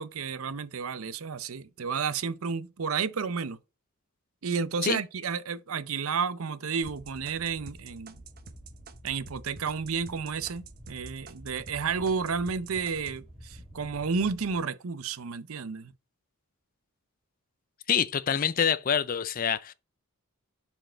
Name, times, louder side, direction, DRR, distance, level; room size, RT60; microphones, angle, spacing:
voice 1, 0.0-3.6 4.4-8.2 9.0-15.9, right 5 dB, 75° right, 0.6 m, -31 dB
sound 1, 6.8-14.6, equal, 30° right, 2.3 m, -50 dB
sound 2, 6.9-11.8 12.1-13.2, right 4 dB, 45° right, 0.9 m, -48 dB
voice 2, 17.9-19.7, left 8 dB, 40° left, 0.4 m, -26 dB
7.7 x 4.6 x 4.0 m
head